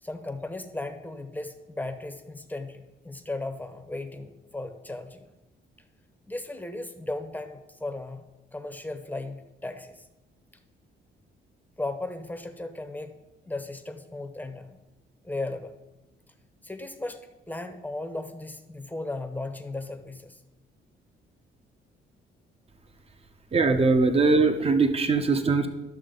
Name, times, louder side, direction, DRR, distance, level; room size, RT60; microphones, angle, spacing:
voice 1, 0.0-5.3 6.3-8.2 8.5-10.1 11.8-13.2 13.4-14.8 15.2-15.7 16.6-17.2 17.5-20.4, left 2 dB, 10° left, 7 dB, 0.9 m, -36 dB
voice 2, 23.5-25.7, right 3 dB, 30° right, 7 dB, 0.9 m, -21 dB
13.0 x 6.3 x 3.9 m, 1.0 s
cardioid pair, 90°, 20 cm